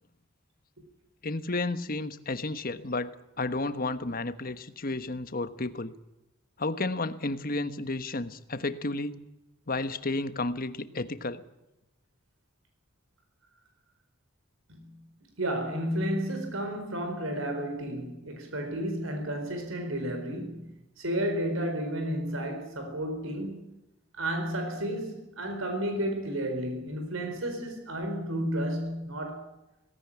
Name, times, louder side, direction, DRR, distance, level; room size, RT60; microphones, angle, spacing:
voice 1, 1.2-5.9 6.6-9.2 9.7-11.4, left 2 dB, 45° left, 1.3 m, -32 dB
voice 2, 14.7-15.0 15.4-20.7 21.0-23.6 24.2-29.5, right 1 dB, 75° right, 4.5 m, -32 dB
18.5 x 16.5 x 10.0 m
head